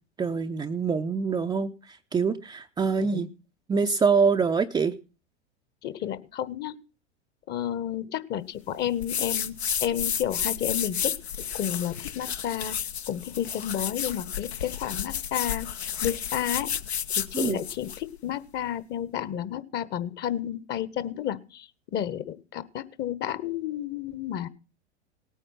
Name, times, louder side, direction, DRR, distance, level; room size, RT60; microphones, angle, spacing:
voice 1, 0.2-3.3 3.7-4.9 17.3-17.6, right 5 dB, 10° right, 5 dB, 0.6 m, -25 dB
voice 2, 5.8-6.7 7.5-11.1 11.5-12.8 13.1-15.7 16.0-16.7 17.2-21.7 21.9-24.5, left 10 dB, 30° left, 16 dB, 1.2 m, -31 dB
sound 1, 9.0-18.0, left 8 dB, 70° left, 1.2 m, -31 dB
18.5 x 9.3 x 5.9 m, 0.35 s
figure-of-eight pair, 90°, 34 cm